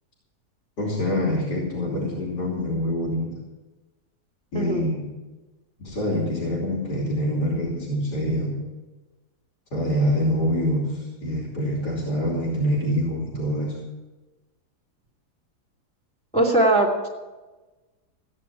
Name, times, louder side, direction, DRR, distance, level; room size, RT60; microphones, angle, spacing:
voice 1, 0.8-3.4 4.5-5.1 5.8-8.5 9.7-13.8, equal, 80° left, -3 dB, 3.6 m, -25 dB
voice 2, 16.3-17.1, right 1 dB, 5° left, 0 dB, 2.3 m, -20 dB
16.0 x 9.8 x 7.1 m, 1.2 s
omnidirectional pair, 1.7 m